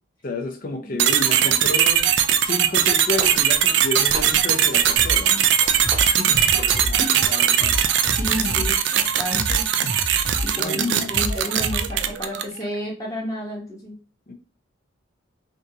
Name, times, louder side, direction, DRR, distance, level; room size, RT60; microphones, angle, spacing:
voice 1, 0.2-2.1 2.4-5.6 6.2-7.9 8.2-8.7 10.5-11.1 14.3-14.4, left 2 dB, 45° left, 0.6 m, -31 dB
sound 1, 1.0-12.6, right 9 dB, 65° right, 0.3 m, -20 dB
sound 2, 1.7-6.8, equal, 20° right, 0.9 m, -38 dB
sound 3, 5.0-5.2 5.6-7.0 7.4-8.7 9.1-10.5 10.9-12.1, equal, 85° right, 1.6 m, -29 dB
voice 2, 8.1-9.6 10.4-13.9, equal, 15° left, 1.0 m, -31 dB
3.5 x 2.6 x 2.8 m
head